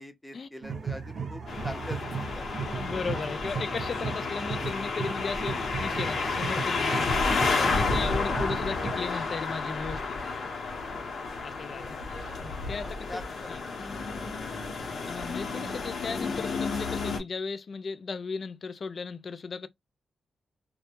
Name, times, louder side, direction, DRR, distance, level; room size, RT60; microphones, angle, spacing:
voice 1, 0.0-2.6 6.8-7.0 11.4-11.7 12.8-13.4 14.2-14.6, left 1 dB, 10° left, 0.6 m, -43 dB
sound 1, 0.6-9.4, right 5 dB, 60° right, 0.5 m, -36 dB
sound 2, 1.5-17.2, left 4 dB, 70° left, 0.8 m, -31 dB
voice 2, 2.7-10.2 11.4-12.0 12.4-13.2 13.5-13.6 15.1-19.7, left 4 dB, 50° left, 0.3 m, -36 dB
2.2 x 2.0 x 2.8 m
cardioid pair, 85°, 0 cm